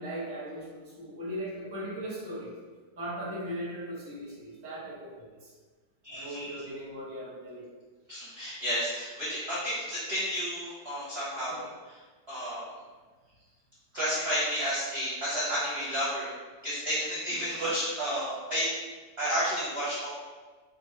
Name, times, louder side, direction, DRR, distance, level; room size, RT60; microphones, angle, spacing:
voice 1, 0.0-2.5 3.0-5.5 6.1-7.7 11.5-11.6, equal, 10° right, -7 dB, 0.6 m, -38 dB
voice 2, 6.0-6.6 8.1-12.0 12.3-12.6 13.9-16.3 16.6-18.7 19.2-20.1, equal, 50° right, -8 dB, 0.7 m, -31 dB
4.3 x 2.1 x 4.0 m, 1.4 s
omnidirectional pair, 2.0 m